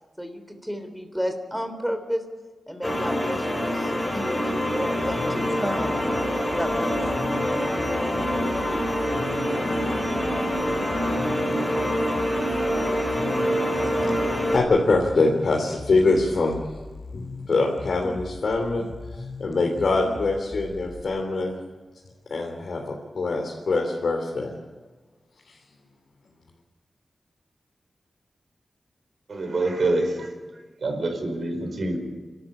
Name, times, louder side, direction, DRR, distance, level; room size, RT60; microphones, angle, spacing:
voice 1, 0.2-2.2 2.7-5.9 6.5-7.0, equal, 5° right, 7 dB, 3.3 m, -31 dB
sound 1, 2.8-14.6, equal, 20° left, 4.7 m, -25 dB
sound 2, 5.0-21.0, left 3 dB, 45° left, 3.5 m, -39 dB
voice 2, 14.5-16.6 17.1-18.9 19.4-21.5 22.3-24.5, left 3 dB, 75° left, 0 dB, 3.3 m, -23 dB
voice 3, 29.3-30.3 30.8-32.0, right 2 dB, 70° right, 4 dB, 4.9 m, -26 dB
29.0 x 13.5 x 8.7 m, 1.3 s
cardioid pair, 70°, 0 cm